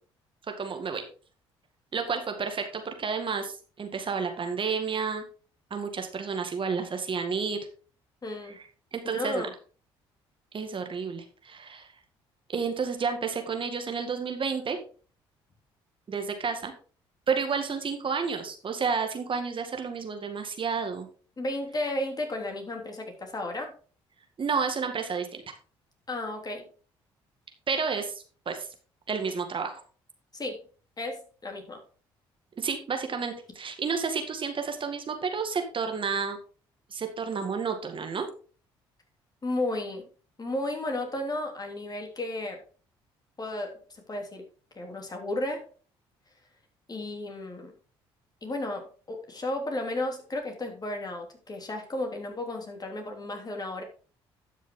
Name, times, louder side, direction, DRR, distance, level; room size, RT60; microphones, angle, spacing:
voice 1, 0.6-1.0 1.9-5.2 5.7-7.6 8.5-8.6 8.9-9.5 10.5-11.9 12.5-14.8 16.1-16.7 17.3-21.1 24.4-25.4 27.7-28.7 29.1-29.8 32.6-36.4 36.9-38.3, right 5 dB, 45° right, 6 dB, 2.0 m, -31 dB
voice 2, 8.2-8.6 9.1-9.5 21.4-23.7 26.1-26.7 30.3-30.6 31.0-31.8 39.4-40.0 40.4-42.6 43.4-44.4 44.7-45.6 46.9-47.7 48.4-53.8, left 1 dB, 30° left, 3 dB, 3.3 m, -33 dB
12.0 x 6.3 x 3.8 m, 0.39 s
hypercardioid pair, 55°, 12 cm